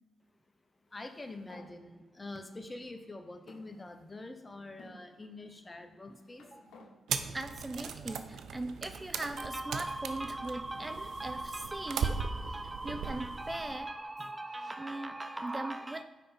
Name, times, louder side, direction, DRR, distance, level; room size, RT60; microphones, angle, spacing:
sound 1, 0.9-1.7 2.5-2.6 3.5-4.3 4.8-5.0 5.9-6.9, left 2 dB, 75° left, 1.1 m, -57 dB
voice 1, 0.9-6.4, left 2 dB, 30° left, 6 dB, 0.9 m, -45 dB
sound 2, 7.1-13.8, right 6 dB, 75° right, 0.5 m, -38 dB
voice 2, 7.3-16.0, right 2 dB, 25° right, 9 dB, 0.5 m, -38 dB
6.5 x 5.1 x 4.2 m, 1.3 s
supercardioid pair, 45°, 0 cm